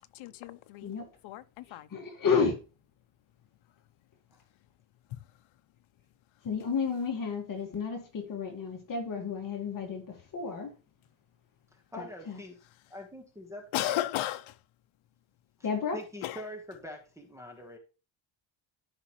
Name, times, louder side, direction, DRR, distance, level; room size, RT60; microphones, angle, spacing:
voice 1, 0.2-0.9 1.2-1.9 13.7-14.5 16.2-16.4, left 14 dB, 70° left, 0.8 m, -34 dB
voice 2, 1.9-2.6 6.4-10.0 10.3-10.7 12.0-12.4 15.6-16.0, left 5 dB, 40° left, 1.9 m, -31 dB
voice 3, 11.9-12.6 12.9-14.0 15.6-17.8, equal, 5° right, 1.4 m, -44 dB
13.5 x 5.2 x 3.1 m
cardioid pair, 175°, 49 cm